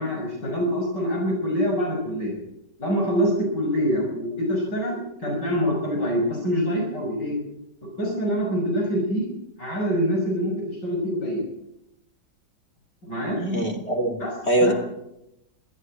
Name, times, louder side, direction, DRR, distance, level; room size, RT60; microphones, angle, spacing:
voice 1, 0.0-2.3 2.8-7.3 8.0-9.3 9.6-11.4 13.0-13.4 14.2-14.3 14.6-14.7, equal, 75° left, -1 dB, 6.6 m, -25 dB
voice 2, 13.3-14.7, right 1 dB, 35° left, 2 dB, 3.4 m, -23 dB
23.5 x 14.5 x 7.7 m, 0.83 s
omnidirectional pair, 1.9 m